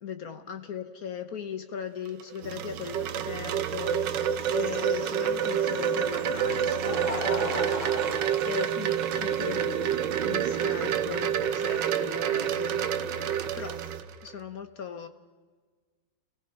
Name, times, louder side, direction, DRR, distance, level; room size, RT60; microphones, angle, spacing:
voice 1, 0.0-4.2 4.5-8.0 8.4-13.8 14.2-15.1, left 7 dB, 55° left, 9 dB, 1.3 m, -38 dB
Wind chime, 2.1-14.3, right 9 dB, 70° right, 1.5 m, -28 dB
sound 1, 2.4-14.0, right 7 dB, 90° right, 2.0 m, -39 dB
Laughter, 6.1-9.3 10.2-10.3 11.7-11.8, left 2 dB, 75° left, 3.4 m, -36 dB
28.5 x 16.5 x 5.7 m, 1.5 s
omnidirectional pair, 2.1 m